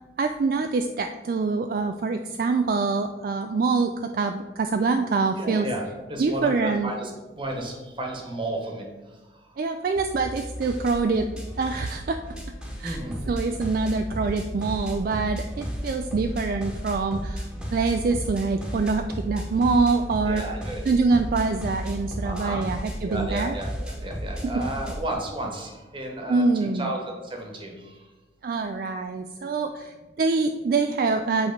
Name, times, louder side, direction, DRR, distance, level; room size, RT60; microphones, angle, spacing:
voice 1, 0.2-5.7 6.2-6.9 9.6-12.2 12.8-13.0 13.3-20.4 20.9-23.6 26.3-26.9 28.4-31.5, right 4 dB, 50° right, 6 dB, 0.3 m, -25 dB
voice 2, 5.4-7.1 7.4-8.8 12.8-13.1 20.3-20.8 22.2-22.6 23.0-26.4 26.7-28.0, right 1 dB, 30° right, 1 dB, 1.1 m, -33 dB
sound 1, 10.0-25.1, equal, 5° right, 1.0 m, -34 dB
7.9 x 3.1 x 5.1 m, 1.2 s
head